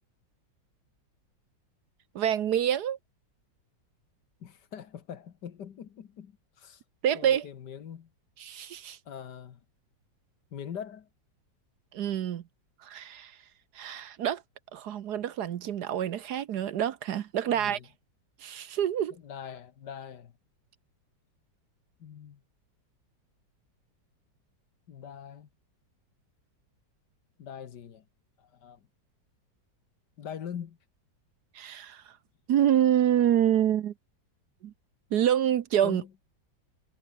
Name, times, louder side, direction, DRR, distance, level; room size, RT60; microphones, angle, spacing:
voice 1, 2.1-3.0 7.0-7.5 8.4-9.0 11.9-12.4 12.8-13.3 13.7-14.4 14.7-17.8 18.4-19.1 31.5-32.0 32.5-33.9 34.6-34.7 35.1-36.0, right 10 dB, 65° right, 1.3 m, -27 dB
voice 2, 4.4-6.8 7.1-8.1 9.1-9.6 10.5-11.1 17.5-17.9 19.1-20.3 22.0-22.4 24.9-25.5 27.4-28.1 28.4-28.9 30.2-30.8 35.8-36.1, left 8 dB, 65° left, 1.9 m, -42 dB
omnidirectional pair, 2.0 m